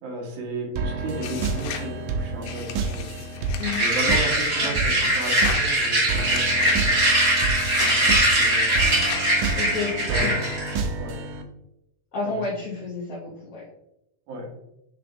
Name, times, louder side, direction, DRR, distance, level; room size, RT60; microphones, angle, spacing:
voice 1, 0.0-3.2 3.8-7.0 7.8-9.1 10.1-10.4 11.0-11.2 12.2-12.4 14.3-14.5, right 1 dB, 75° right, -1 dB, 3.4 m, -34 dB
sound 1, 0.8-11.4, right 3 dB, 90° right, 1.6 m, -30 dB
sound 2, 1.2-1.9 2.4-4.1 5.2-5.7 6.3-6.8 7.5-8.1 8.7-9.3, left 8 dB, 85° left, 2.7 m, -35 dB
sound 3, 3.6-10.8, right 1 dB, 30° right, 2.4 m, -22 dB
voice 2, 9.6-9.9 10.2-10.3 12.1-13.6, left 4 dB, 70° left, -5 dB, 1.4 m, -30 dB
10.0 x 3.5 x 3.5 m, 0.85 s
omnidirectional pair, 4.3 m